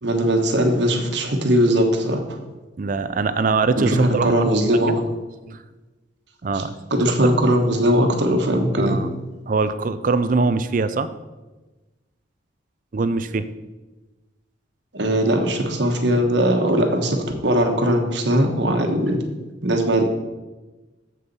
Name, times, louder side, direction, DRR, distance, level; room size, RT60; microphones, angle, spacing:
voice 1, 0.0-2.4 3.8-4.9 6.5-6.6 6.9-9.0 14.9-19.2 19.6-20.0, right 1 dB, 70° right, 4 dB, 1.3 m, -20 dB
voice 2, 2.8-5.0 5.5-5.6 6.4-6.7 8.8-9.1 9.5-11.1 12.9-13.5, right 4 dB, 45° right, 13 dB, 0.4 m, -23 dB
7.7 x 6.9 x 5.4 m, 1.2 s
head